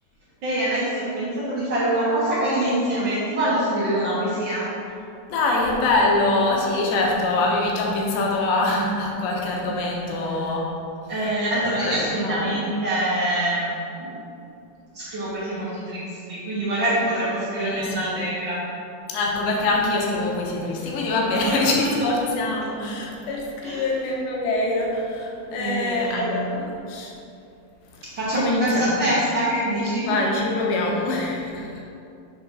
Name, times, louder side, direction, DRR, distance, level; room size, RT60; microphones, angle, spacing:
voice 1, 0.4-4.7 11.1-14.1 14.9-18.6 23.6-23.8 25.6-26.6 28.1-30.1, right 1 dB, 80° right, -10 dB, 1.0 m, -25 dB
voice 2, 5.3-10.8 11.2-12.6 17.6-18.1 19.1-27.1 28.4-29.0 30.0-31.8, left 2 dB, 85° left, -1 dB, 3.2 m, -24 dB
6.7 x 5.5 x 5.5 m, 2.6 s
omnidirectional pair, 4.9 m